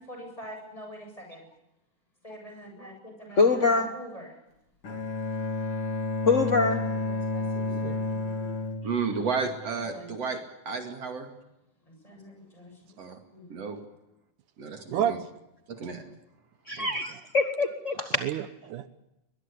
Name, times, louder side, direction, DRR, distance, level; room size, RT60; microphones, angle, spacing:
voice 1, 0.0-1.4 2.2-4.4 6.2-8.5 9.3-9.4 9.9-10.1 11.9-13.0 13.3-13.5, equal, 10° left, 2 dB, 7.9 m, -45 dB
voice 2, 3.4-3.9 6.3-6.8 16.7-18.2, left 3 dB, 65° left, 7 dB, 0.7 m, -24 dB
Bowed string instrument, 4.8-9.9, left 2 dB, 45° left, 3.7 m, -31 dB
voice 3, 7.6-8.0 14.9-15.2 16.8-16.9 18.2-18.9, right 10 dB, 75° right, 12 dB, 2.4 m, -30 dB
voice 4, 8.8-10.4 10.7-11.3 13.0-13.2 13.5-13.8 14.6-15.2 15.7-16.0, right 5 dB, 50° right, 6 dB, 3.3 m, -32 dB
22.5 x 21.5 x 8.6 m, 0.90 s
omnidirectional pair, 3.7 m